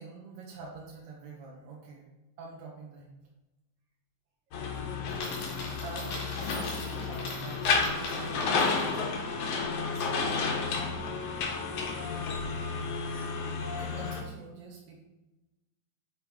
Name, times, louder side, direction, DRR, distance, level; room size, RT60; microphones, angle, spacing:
voice 1, 0.0-2.1 2.4-3.2 5.3-9.0 9.6-10.5 13.1-13.4 13.7-15.0, right 3 dB, 80° right, -2 dB, 2.7 m, -47 dB
sound 1, 4.5-14.2, left 4 dB, 65° left, 1.6 m, -31 dB
Coin (dropping), 5.1-9.0, left 2 dB, 85° left, 3.7 m, -40 dB
9.2 x 3.4 x 4.7 m, 1.0 s
omnidirectional pair, 4.0 m